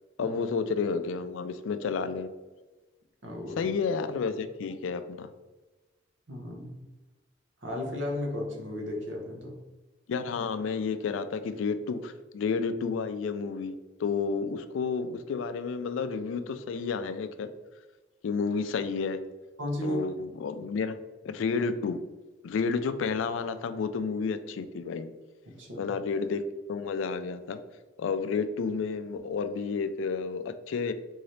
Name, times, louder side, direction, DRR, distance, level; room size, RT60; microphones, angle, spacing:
voice 1, 0.2-2.3 3.6-5.3 10.1-13.7 14.0-17.5 18.2-19.2 19.8-21.0 21.2-22.0 22.4-25.1 25.8-26.4 26.7-27.6 28.0-30.9, left 5 dB, 85° left, 11 dB, 0.3 m, -31 dB
voice 2, 3.2-3.7 6.3-6.7 7.6-9.6 19.6-20.0 25.6-25.9, left 1 dB, 75° right, 1 dB, 0.9 m, -34 dB
3.8 x 2.7 x 3.2 m, 1.2 s
head